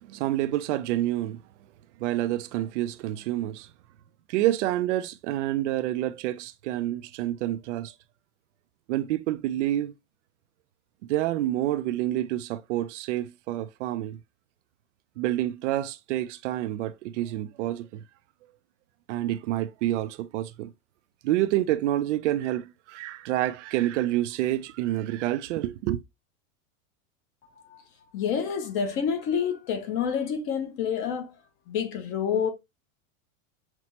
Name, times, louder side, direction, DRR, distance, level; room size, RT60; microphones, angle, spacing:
voice 1, 0.1-1.4 2.0-3.7 4.3-7.9 8.9-9.9 11.1-14.2 15.2-18.0 19.1-20.7 21.2-26.0, right 14 dB, 65° right, 0.5 m, -28 dB
voice 2, 28.1-31.3 31.7-32.5, left 7 dB, 35° left, 0.7 m, -28 dB
5.8 x 2.1 x 2.8 m
supercardioid pair, 150°, 39 cm